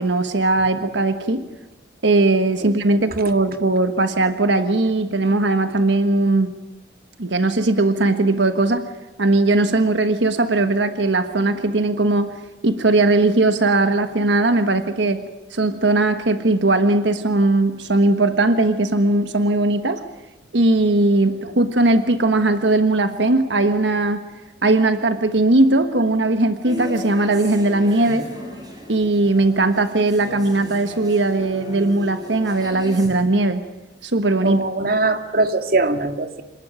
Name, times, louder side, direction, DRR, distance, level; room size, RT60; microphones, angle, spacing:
voice 1, 0.0-1.4 2.0-6.5 7.2-8.9 9.2-12.3 12.6-15.2 15.5-20.0 20.5-24.2 24.6-28.3 28.9-33.6 34.0-34.6, right 2 dB, 85° right, 9 dB, 1.4 m, -19 dB
sound 1, 26.6-33.1, left 1 dB, 25° right, 7.2 m, -36 dB
voice 2, 34.4-36.4, right 3 dB, 55° right, 8 dB, 2.0 m, -21 dB
27.0 x 19.5 x 9.0 m, 1.0 s
head